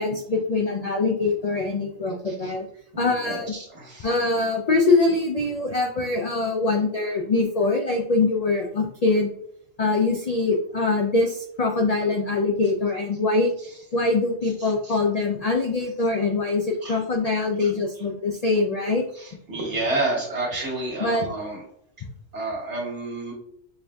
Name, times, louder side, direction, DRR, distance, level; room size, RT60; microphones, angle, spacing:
voice 1, 0.0-2.7 3.0-3.5 4.0-9.3 9.8-13.5 13.9-19.0 21.0-21.3, left 3 dB, 80° left, 1 dB, 0.3 m, -23 dB
voice 2, 2.9-4.1 14.6-15.0 16.8-17.0 17.6-17.7 19.1-21.6 22.3-23.3, right 2 dB, 70° right, -3 dB, 1.5 m, -30 dB
6.6 x 2.6 x 2.2 m, 0.72 s
omnidirectional pair, 1.2 m